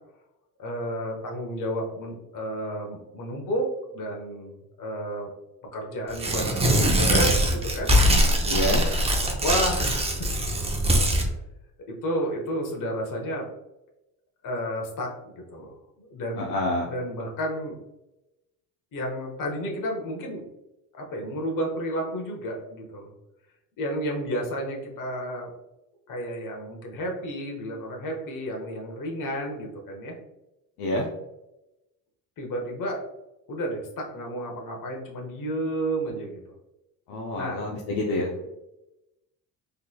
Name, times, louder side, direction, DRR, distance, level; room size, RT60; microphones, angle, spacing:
voice 1, 0.6-5.3 5.7-7.9 9.4-10.3 11.9-13.5 14.4-17.8 18.9-20.5 20.9-23.1 23.8-25.5 26.1-30.2 32.4-33.0 33.5-36.4 37.4-37.7, equal, 55° left, 0 dB, 1.2 m, -31 dB
Tearing, 6.1-11.3, equal, 15° right, 0.5 m, -22 dB
voice 2, 8.5-8.9 16.4-16.9 30.8-31.1 37.1-38.3, left 1 dB, 70° left, -1 dB, 0.7 m, -27 dB
3.9 x 3.4 x 2.2 m, 0.94 s
cardioid pair, 125°, 38 cm